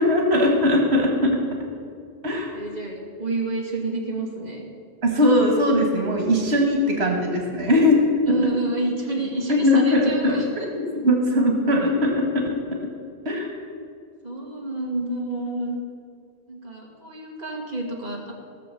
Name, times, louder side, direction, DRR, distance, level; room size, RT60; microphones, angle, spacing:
voice 1, 0.0-1.4 2.2-2.5 5.0-8.0 8.3-8.4 9.5-12.5 12.7-12.8 13.3-13.5, left 1 dB, 90° right, 1 dB, 1.9 m, -20 dB
voice 2, 2.5-4.6 6.9-7.2 8.3-10.7 14.2-15.8 16.5-18.3, right 2 dB, 40° right, -2 dB, 2.1 m, -29 dB
16.0 x 6.9 x 6.9 m, 2.2 s
omnidirectional pair, 1.0 m